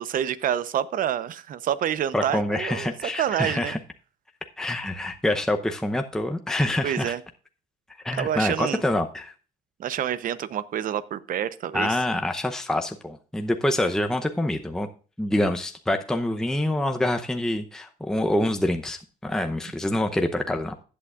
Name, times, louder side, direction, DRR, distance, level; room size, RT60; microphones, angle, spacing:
voice 1, 0.0-3.8 6.8-7.2 8.2-8.8 9.8-12.0, right 10 dB, 55° right, 16 dB, 0.8 m, -27 dB
voice 2, 2.1-3.8 4.6-7.1 8.0-9.3 11.7-14.9 15.2-20.7, left 1 dB, 5° left, 5 dB, 0.7 m, -26 dB
15.0 x 8.5 x 2.4 m, 0.37 s
cardioid pair, 110°, 17 cm